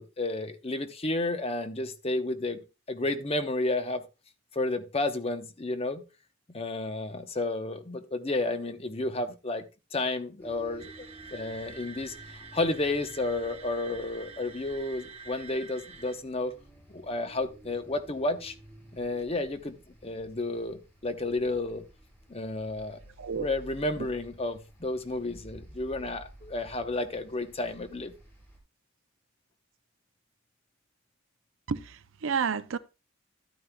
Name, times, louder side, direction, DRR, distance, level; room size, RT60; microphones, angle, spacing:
voice 1, 0.0-4.0 4.5-6.0 6.5-9.6 9.9-12.1 12.5-16.5 16.9-18.5 18.9-19.8 20.0-21.8 22.3-23.0 23.3-28.1, left 2 dB, 30° left, 0.8 m, -31 dB
sound 1, 10.4-28.6, right 1 dB, 10° left, 4.6 m, -53 dB
sound 2, 10.8-16.1, right 4 dB, 30° right, 1.0 m, -47 dB
voice 2, 31.7-32.8, right 6 dB, 65° right, 0.5 m, -31 dB
13.0 x 9.4 x 2.2 m
head